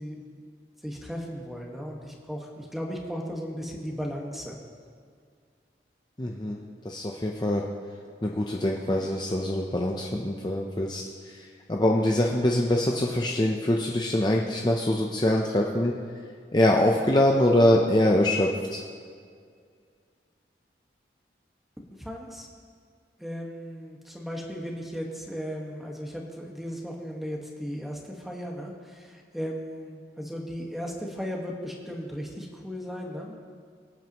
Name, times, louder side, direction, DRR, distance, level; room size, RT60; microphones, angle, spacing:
voice 1, 0.0-4.6 22.0-22.5 23.2-33.4, equal, ahead, -1 dB, 1.5 m, -36 dB
voice 2, 6.2-6.6 6.8-7.6 8.2-15.9 16.5-18.8, left 1 dB, 25° left, 0 dB, 0.7 m, -24 dB
23.5 x 9.1 x 3.0 m, 2.1 s
head